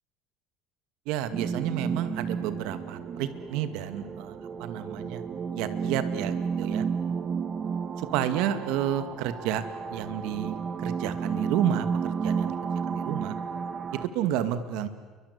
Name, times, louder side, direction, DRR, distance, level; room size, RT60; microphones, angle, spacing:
voice 1, 1.1-5.2 5.5-6.9 8.0-9.6 9.9-12.5 12.9-13.3 13.9-14.9, right 10 dB, 75° right, 11 dB, 2.1 m, -31 dB
sound 1, 1.3-14.1, right 6 dB, 30° right, 1.7 m, -32 dB
29.5 x 24.0 x 8.3 m, 1.3 s
cardioid pair, 140°, 0 cm